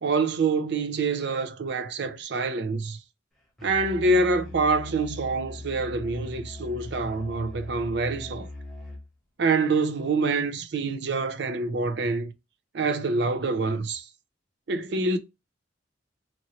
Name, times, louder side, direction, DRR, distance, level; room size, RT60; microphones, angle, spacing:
voice 1, 0.0-3.0 3.6-8.5 9.4-12.3 12.7-14.0 14.7-15.2, right 3 dB, 60° right, 0.5 m, -26 dB
Musical instrument, 3.6-9.1, left 2 dB, ahead, 0.8 m, -40 dB
3.0 x 2.6 x 2.9 m
head